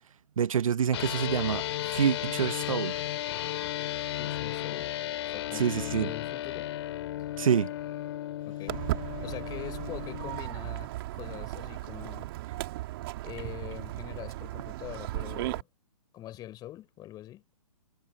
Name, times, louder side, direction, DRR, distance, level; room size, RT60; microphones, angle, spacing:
voice 1, 0.4-1.6 1.9-3.0 5.5-6.1 7.4-7.7, right 8 dB, 65° right, 1.0 m, -26 dB
sound 1, 0.9-10.4, left 13 dB, 45° left, 2.6 m, -34 dB
voice 2, 4.2-4.9 5.3-6.7 8.5-8.8 9.2-12.3 13.2-15.7 16.1-17.4, left 14 dB, 20° left, 4.5 m, -43 dB
Walk footsteps, 8.7-15.6, right 17 dB, 40° right, 2.7 m, -36 dB
figure-of-eight pair, 130°, 19 cm